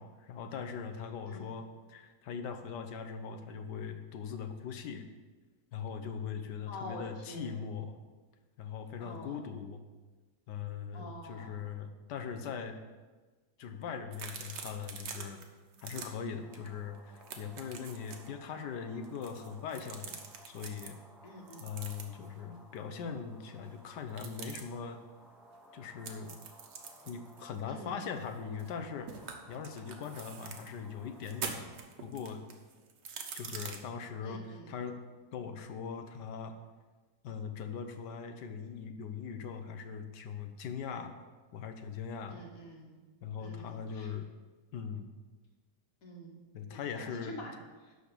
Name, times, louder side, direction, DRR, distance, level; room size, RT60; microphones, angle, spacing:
voice 1, 0.0-5.1 5.7-8.0 8.6-9.8 10.5-12.8 13.6-15.4 15.8-21.0 21.6-25.0 25.7-26.3 27.1-31.6 32.0-32.4 33.3-35.0 35.3-36.6 37.2-41.2 41.5-42.4 43.2-44.3 44.7-45.1 46.5-47.4, left 6 dB, 75° left, 8 dB, 1.4 m, -41 dB
voice 2, 6.7-7.6 9.0-9.4 10.9-11.6 21.2-21.7 27.7-28.0 34.2-34.8 42.3-43.0 43.4-44.1 46.0-46.4 46.7-48.0, left 1 dB, 55° left, 0 dB, 1.9 m, -47 dB
sound 1, 14.1-15.4 15.7-16.1 16.5-16.7 17.0-18.3 19.0-20.9 21.5-22.3 24.1-24.6 26.0-28.8 29.1-30.7 31.2-33.8, right 6 dB, 85° right, 1.6 m, -45 dB
sound 2, 16.4-31.8, equal, ahead, 0.5 m, -59 dB
11.5 x 4.0 x 6.8 m, 1.3 s
omnidirectional pair, 1.8 m